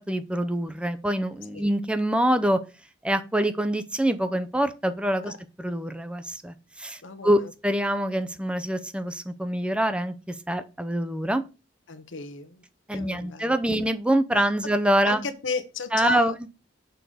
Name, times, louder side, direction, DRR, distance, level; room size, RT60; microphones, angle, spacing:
voice 1, 0.1-2.6 3.0-5.3 5.6-11.4 12.9-15.3 15.9-16.3, right 1 dB, 5° right, 0.6 m, -25 dB
voice 2, 7.0-7.5 11.9-12.6 12.9-13.6 14.4-14.5 15.0-16.3, left 4 dB, 80° left, 1.0 m, -34 dB
6.8 x 3.9 x 6.2 m
head